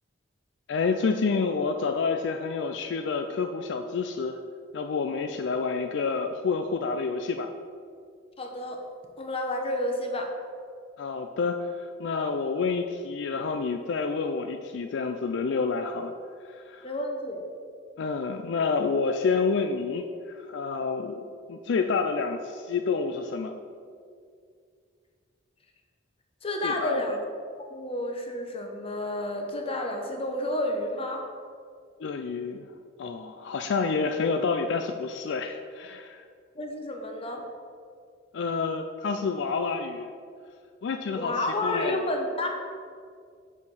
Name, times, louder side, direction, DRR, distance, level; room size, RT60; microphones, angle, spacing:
voice 1, 0.7-4.4 4.7-7.5 11.0-16.9 18.0-23.6 26.6-27.2 32.0-32.7 33.0-36.2 38.3-40.1 40.8-42.1, left 4 dB, 65° left, 6 dB, 0.4 m, -29 dB
voice 2, 8.4-8.8 9.2-10.3 16.8-17.4 26.4-27.2 27.7-31.2 36.5-37.4 41.1-42.5, left 1 dB, 30° left, 2 dB, 0.9 m, -30 dB
6.9 x 4.8 x 5.5 m, 2.2 s
head